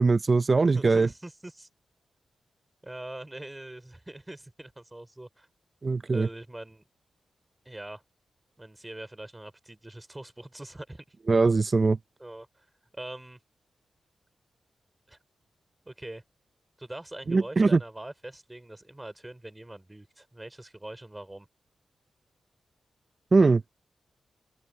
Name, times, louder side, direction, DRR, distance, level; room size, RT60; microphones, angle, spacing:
voice 1, 0.0-1.1 5.8-6.3 11.3-12.0 17.3-17.8 23.3-23.6, right 3 dB, 40° right, 0.5 m, -21 dB
voice 2, 0.6-1.7 2.8-5.5 6.1-6.8 7.7-8.0 8.6-11.0 12.2-12.7 12.9-13.4 15.1-15.2 15.9-16.2 16.8-21.5, right 1 dB, 15° right, 3.9 m, -43 dB
open air
cardioid pair, 65°, 0 cm